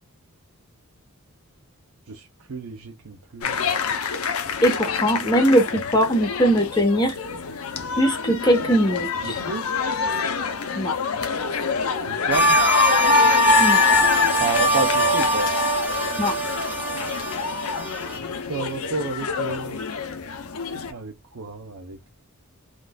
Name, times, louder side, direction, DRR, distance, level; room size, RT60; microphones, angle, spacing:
voice 1, 2.1-3.6 9.2-9.7 12.1-12.6 14.3-15.5 18.5-19.8 20.9-22.1, right 3 dB, 70° right, 0.7 m, -30 dB
sound 1, 3.4-20.9, left 5 dB, 70° left, 0.7 m, -25 dB
voice 2, 4.6-7.1 8.0-9.4 10.8-10.9 13.6-13.8 16.2-16.3, equal, 20° left, 1.0 m, -20 dB
sound 2, 12.3-18.2, right 2 dB, 10° right, 1.0 m, -23 dB
3.7 x 2.5 x 2.2 m
head